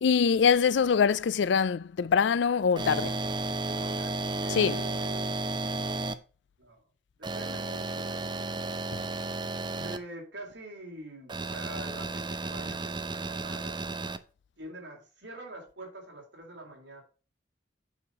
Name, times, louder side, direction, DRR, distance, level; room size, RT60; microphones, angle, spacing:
voice 1, 0.0-3.2 4.5-4.8, left 6 dB, 70° left, 0.4 m, -24 dB
sound 1, 2.8-6.1 7.2-10.0 11.3-14.2, right 3 dB, 25° right, 0.6 m, -33 dB
voice 2, 3.6-5.8 6.6-6.8 7.2-8.4 9.7-14.1 14.6-17.0, right 1 dB, 80° right, 3.5 m, -45 dB
8.6 x 4.9 x 4.7 m
head